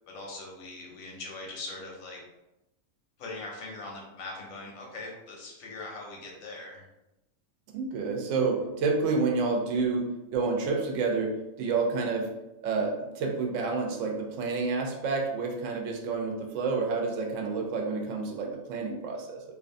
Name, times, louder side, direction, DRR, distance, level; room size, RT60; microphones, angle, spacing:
voice 1, 0.1-2.2 3.2-6.9, left 2 dB, 90° left, -1 dB, 1.1 m, -41 dB
voice 2, 7.7-12.3 12.6-19.4, right 4 dB, 75° right, 1 dB, 0.9 m, -29 dB
2.7 x 2.2 x 2.5 m, 0.95 s
omnidirectional pair, 1.4 m